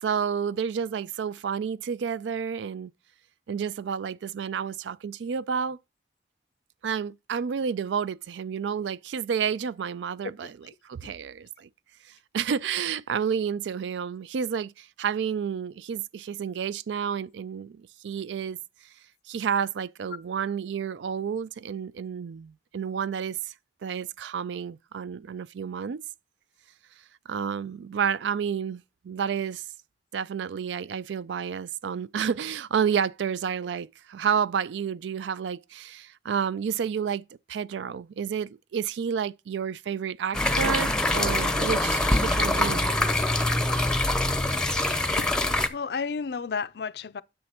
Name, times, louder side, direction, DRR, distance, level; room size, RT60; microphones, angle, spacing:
voice 1, 0.0-2.9 3.5-5.8 6.8-10.5 10.8-11.7 12.3-18.6 19.3-23.4 23.8-26.0 27.3-29.6 30.1-42.8, right 7 dB, 80° right, 0.4 m, -30 dB
sound 1, 40.3-45.7, left 1 dB, 5° left, 0.6 m, -24 dB
voice 2, 45.7-47.2, left 5 dB, 65° left, 0.4 m, -32 dB
9.6 x 6.9 x 2.9 m
head